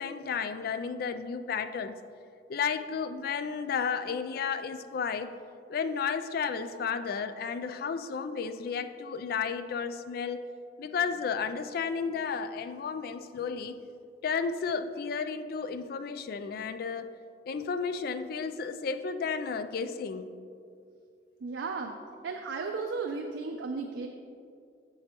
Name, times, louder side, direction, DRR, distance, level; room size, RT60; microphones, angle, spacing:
voice 1, 0.0-2.0 2.5-5.3 5.7-10.5 10.8-13.8 14.2-17.2 17.5-20.3, left 6 dB, 55° left, 11 dB, 0.3 m, -33 dB
voice 2, 21.4-21.9 22.2-24.1, right 4 dB, 80° right, 3 dB, 0.4 m, -34 dB
7.6 x 7.0 x 2.9 m, 2.4 s
head